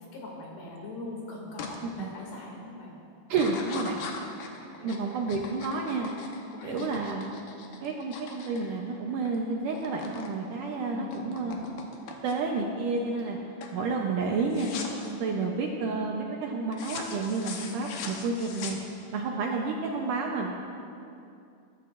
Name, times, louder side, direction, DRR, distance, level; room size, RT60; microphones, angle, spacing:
voice 1, 0.0-3.0 3.7-4.0 4.8-5.0 6.5-6.9 10.9-11.6, left 2 dB, 85° left, -2 dB, 4.5 m, -42 dB
sound 1, 1.6-1.8 2.2-2.6 3.3-9.4 9.6-10.3 10.6-12.6 13.1-13.4 13.6-13.8 14.5-15.1 16.7-19.2, left 5 dB, 70° left, 2.4 m, -41 dB
voice 2, 3.3-4.0 4.8-6.1 6.6-7.2 7.8-11.7 12.2-13.4 13.7-14.7 15.1-18.8 19.1-20.5, right 4 dB, 75° right, 0 dB, 2.0 m, -30 dB
21.5 x 12.5 x 2.6 m, 2.5 s
omnidirectional pair, 4.6 m